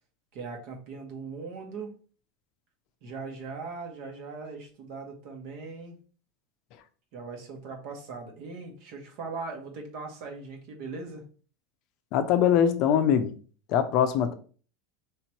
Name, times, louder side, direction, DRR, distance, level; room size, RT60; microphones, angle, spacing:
voice 1, 0.3-1.9 3.0-6.0 7.1-11.2, right 4 dB, 55° right, 1.3 m, -39 dB
voice 2, 12.1-13.3 13.7-14.3, left 9 dB, 50° left, 0.5 m, -22 dB
3.3 x 2.9 x 4.4 m
supercardioid pair, 150°, 0 cm